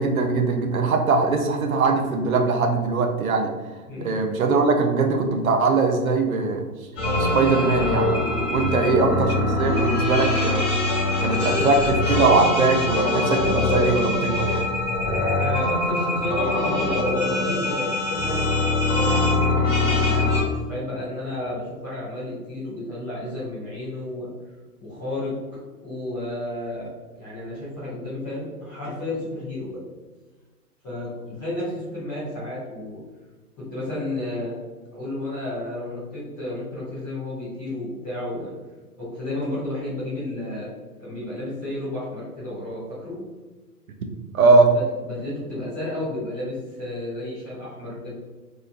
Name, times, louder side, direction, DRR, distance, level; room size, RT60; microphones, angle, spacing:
voice 1, 0.0-3.5 4.0-6.7 7.3-8.1 8.5-10.7 11.2-14.6 44.3-44.7, right 3 dB, 60° right, 3 dB, 0.6 m, -21 dB
sound 1, 7.0-20.4, left 2 dB, 30° left, 1.1 m, -23 dB
voice 2, 15.3-18.5 19.8-24.3 24.8-25.3 25.8-26.9 27.2-29.8 30.8-33.0 33.6-34.5 34.9-38.5 39.0-40.7 41.0-43.2 44.7-48.1, left 1 dB, 5° left, -12 dB, 0.5 m, -32 dB
4.2 x 2.8 x 2.4 m, 1.3 s
figure-of-eight pair, 115°, 47 cm